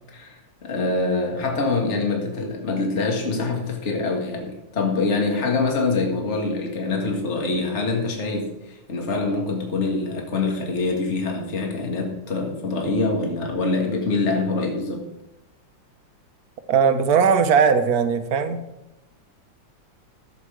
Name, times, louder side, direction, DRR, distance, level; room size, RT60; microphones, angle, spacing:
voice 1, 0.1-15.0, left 3 dB, 35° left, 1 dB, 2.0 m, -25 dB
voice 2, 16.7-18.6, right 6 dB, 55° right, 8 dB, 1.4 m, -18 dB
15.0 x 7.2 x 4.9 m, 0.93 s
omnidirectional pair, 2.1 m